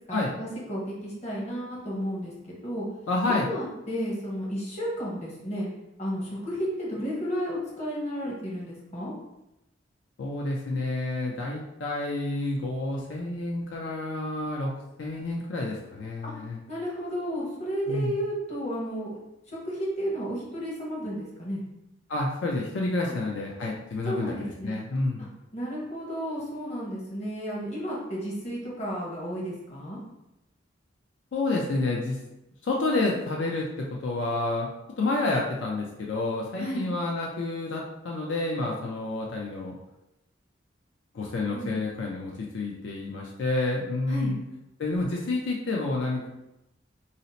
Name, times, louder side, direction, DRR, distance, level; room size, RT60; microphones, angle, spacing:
voice 1, 0.1-2.3 2.6-2.9 3.5-5.7 6.0-9.1 16.2-16.3 16.7-19.2 19.5-21.6 24.1-24.8 25.5-30.0 36.6-36.9 41.5-41.7 44.1-44.3, equal, 35° left, -4 dB, 0.9 m, -32 dB
voice 2, 3.1-3.5 10.2-14.7 15.0-16.6 17.9-18.2 22.1-25.2 31.3-32.2 32.6-34.7 35.0-39.7 41.1-44.5 44.8-46.3, left 2 dB, 80° left, -2 dB, 0.4 m, -29 dB
2.7 x 2.0 x 3.9 m, 0.91 s
head